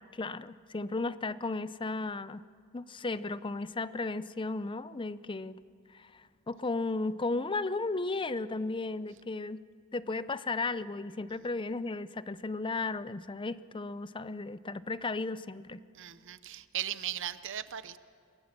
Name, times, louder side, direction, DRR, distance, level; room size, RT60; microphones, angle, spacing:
voice 1, 0.0-2.4 2.7-5.6 5.9-9.6 9.9-15.8, left 3 dB, 25° left, 15 dB, 0.5 m, -35 dB
voice 2, 16.0-18.0, right 11 dB, 65° right, 13 dB, 0.8 m, -37 dB
27.5 x 23.0 x 6.1 m, 2.4 s
head